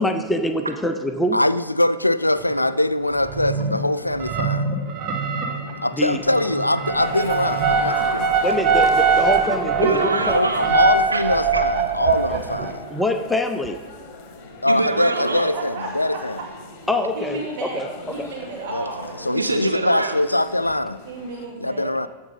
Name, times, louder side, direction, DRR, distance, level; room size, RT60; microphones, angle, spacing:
voice 1, 0.0-1.4 6.0-6.2 8.4-10.3 12.9-13.8 16.9-17.9 18.2-18.3, left 1 dB, 5° left, 7 dB, 0.7 m, -24 dB
voice 2, 1.3-4.8 5.8-8.4 10.3-12.7 14.6-16.4 18.7-18.9 19.2-21.0 21.6-22.1, left 1 dB, 85° left, 15 dB, 0.3 m, -22 dB
sound 1, 2.5-2.6 3.2-3.8 4.1-12.8, right 5 dB, 30° right, 1.5 m, -22 dB
voice 3, 4.9-5.9 8.0-8.5 9.8-10.7 11.1-11.2 11.5-11.6 11.9-12.0 14.3-15.5 19.3-20.4, right 3 dB, 80° right, 7 dB, 0.6 m, -26 dB
sound 2, 7.0-21.5, left 6 dB, 40° left, 1.4 m, -40 dB
voice 4, 15.1-16.2 17.1-19.8 21.1-21.9, right 2 dB, 50° right, -1 dB, 2.8 m, -33 dB
14.0 x 5.9 x 5.4 m, 1.3 s
figure-of-eight pair, 90°, 0 cm